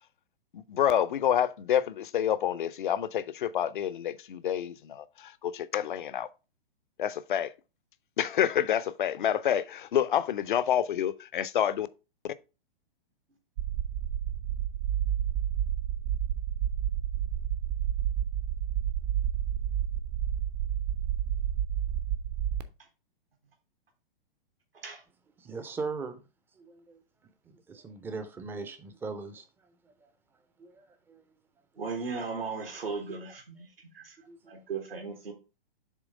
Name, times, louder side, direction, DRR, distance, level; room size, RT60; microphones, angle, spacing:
voice 1, 0.5-6.3 7.0-7.5 8.2-11.9, left 10 dB, 55° left, 0.6 m, -28 dB
sound 1, 13.6-22.6, right 10 dB, 45° right, 0.7 m, -30 dB
voice 2, 25.4-26.2 26.6-27.0 27.5-29.4 30.0-30.1 30.6-31.2 34.3-34.5, right 4 dB, 5° right, 0.5 m, -39 dB
voice 3, 31.8-34.2 34.5-35.3, right 4 dB, 75° right, 1.3 m, -37 dB
7.4 x 3.0 x 4.9 m
figure-of-eight pair, 110°, 29 cm